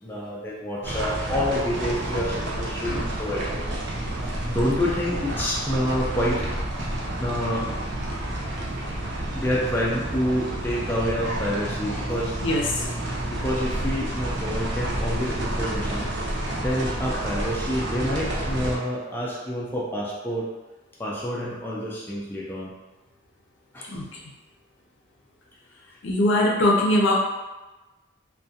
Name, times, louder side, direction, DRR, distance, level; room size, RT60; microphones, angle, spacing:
voice 1, 0.0-3.6 4.2-6.4 6.7-6.8 7.2-7.6 9.3-12.3 12.8-12.9 13.3-16.1 16.6-20.5 21.0-22.7 23.7-23.9, equal, 10° left, -6 dB, 0.3 m, -28 dB
sound 1, 0.8-18.8, right 1 dB, 60° right, 0.5 m, -29 dB
voice 2, 12.4-12.9 23.9-24.2 26.0-27.1, left 1 dB, 65° left, -3 dB, 0.5 m, -22 dB
2.4 x 2.2 x 2.6 m, 1.1 s
head